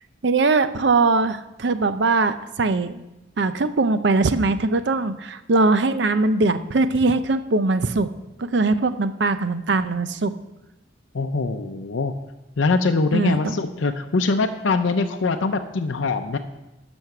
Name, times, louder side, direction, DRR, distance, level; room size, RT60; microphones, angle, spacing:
voice 1, 0.2-3.0 3.4-8.1 8.4-10.3 13.1-13.6, right 3 dB, 65° right, 11 dB, 0.6 m, -21 dB
voice 2, 11.1-12.1 12.6-16.4, left 3 dB, 80° left, 6 dB, 0.6 m, -23 dB
10.5 x 6.2 x 6.7 m, 0.97 s
head